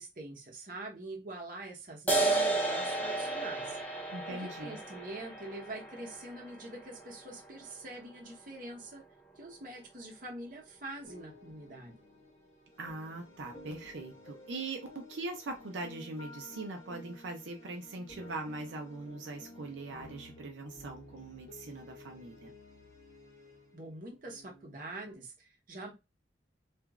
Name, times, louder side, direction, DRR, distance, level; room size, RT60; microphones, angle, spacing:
voice 1, 0.0-3.8 4.3-9.0 9.4-12.0 23.7-25.9, right 2 dB, 45° right, 0.9 m, -44 dB
sound 1, 2.1-9.0, right 2 dB, 10° left, 0.6 m, -34 dB
voice 2, 4.1-4.8 12.8-22.5, right 2 dB, 85° right, 0.5 m, -41 dB
sound 2, 11.0-25.1, left 2 dB, 35° left, 1.3 m, -53 dB
2.9 x 2.4 x 2.4 m
head